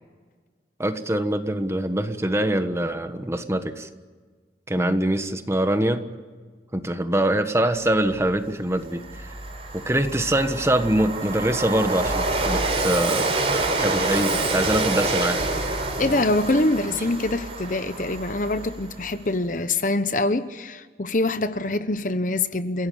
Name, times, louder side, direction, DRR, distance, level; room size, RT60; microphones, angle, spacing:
voice 1, 0.8-3.9 4.7-6.0 6.7-9.3 9.7-13.3 13.8-15.4, right 1 dB, 15° right, 1.4 m, -24 dB
Train, 8.3-8.4 8.8-19.2, right 2 dB, 35° right, 4.5 m, -27 dB
voice 2, 16.0-22.9, left 2 dB, 45° left, 1.0 m, -24 dB
30.0 x 17.0 x 8.7 m
head